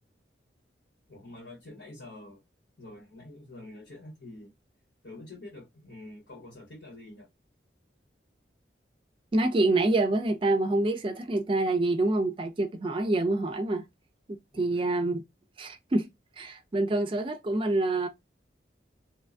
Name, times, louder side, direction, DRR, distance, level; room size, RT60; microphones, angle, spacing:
voice 1, 1.1-2.4 2.8-4.5 5.0-7.3 14.5-14.8, left 2 dB, 90° left, 1.5 m, -46 dB
voice 2, 9.3-13.8 14.3-15.2 15.6-16.1 16.4-18.1, right 2 dB, 30° right, 0.3 m, -26 dB
2.9 x 2.3 x 2.4 m
head